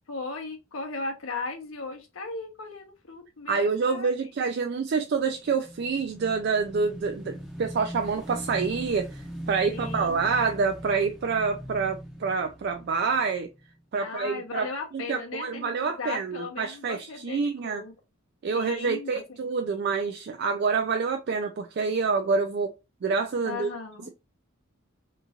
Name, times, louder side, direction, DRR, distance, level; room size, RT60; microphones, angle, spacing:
voice 1, 0.1-4.1 4.4-4.5 9.7-10.2 14.0-17.9 18.5-19.1 23.4-24.1, left 3 dB, 75° left, 0.7 m, -37 dB
voice 2, 3.5-9.1 9.5-13.5 13.9-14.7 14.9-17.8 18.4-22.7 23.0-23.7, right 5 dB, 50° right, 0.3 m, -27 dB
Motorcycle / Engine, 5.2-13.8, equal, ahead, 0.5 m, -40 dB
3.0 x 2.4 x 2.6 m
head